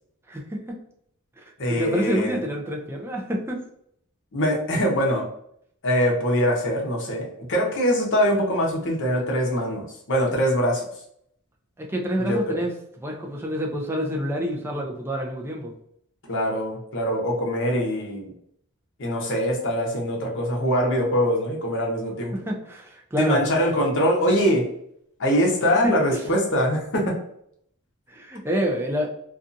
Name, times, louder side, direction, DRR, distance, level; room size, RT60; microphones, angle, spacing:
voice 1, 0.3-0.8 1.4-3.6 11.8-12.7 13.0-15.7 22.3-23.4 25.8-26.2 28.1-29.1, equal, 10° right, 1 dB, 0.4 m, -28 dB
voice 2, 1.6-2.4 4.3-5.2 5.8-10.8 12.3-12.6 16.3-18.3 19.0-22.3 23.2-24.7 25.2-27.2, equal, 55° left, -1 dB, 0.8 m, -23 dB
2.6 x 2.3 x 2.5 m, 0.70 s
head